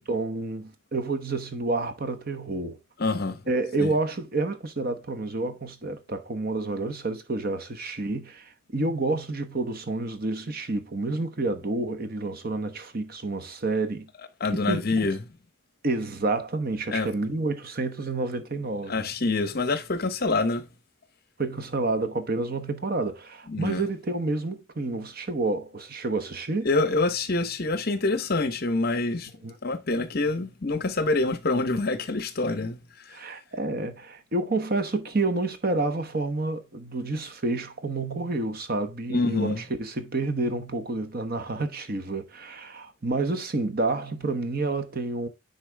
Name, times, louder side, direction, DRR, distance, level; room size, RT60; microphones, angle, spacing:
voice 1, 0.1-2.8 3.5-14.1 14.5-15.1 15.8-19.1 21.4-26.7 29.4-29.5 33.1-45.3, right 2 dB, 45° right, 1.0 m, -29 dB
voice 2, 3.0-3.4 3.8-3.9 14.4-15.2 16.9-17.1 18.9-20.7 23.5-23.8 26.6-29.3 29.6-32.8 33.0-33.2 39.1-39.6, left 3 dB, 45° left, 0.9 m, -26 dB
9.9 x 4.0 x 3.4 m
head